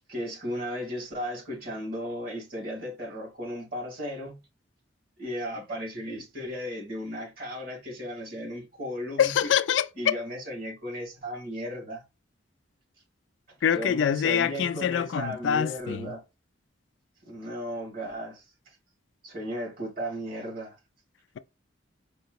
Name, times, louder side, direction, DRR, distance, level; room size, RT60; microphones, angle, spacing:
voice 1, 0.1-4.4 5.2-9.5 10.0-12.0 13.7-16.2 17.2-18.4 19.2-20.7, equal, 50° right, 2.4 m, -35 dB
voice 2, 9.2-10.2 13.6-16.1, left 8 dB, 70° left, 0.3 m, -25 dB
4.9 x 2.1 x 3.9 m
head